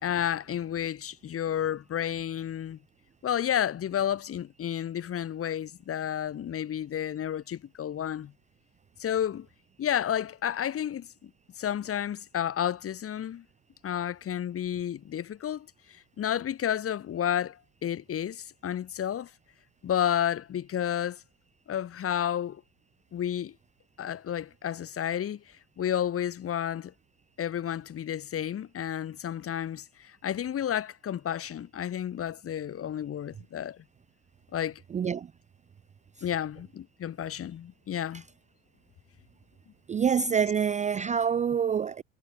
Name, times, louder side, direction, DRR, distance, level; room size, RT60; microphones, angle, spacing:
voice 1, 0.0-2.8 3.2-8.3 9.0-9.5 9.8-11.3 11.6-13.4 13.8-15.7 16.2-19.3 19.8-21.2 21.7-22.6 23.1-23.5 24.0-25.4 25.8-26.9 27.4-33.8 34.5-34.8 36.2-38.2, left 10 dB, 40° left, 3.1 m, -31 dB
voice 2, 34.9-35.3 38.1-38.2 39.9-42.0, right 7 dB, 20° right, 0.4 m, -26 dB
cardioid pair, 125°, 35 cm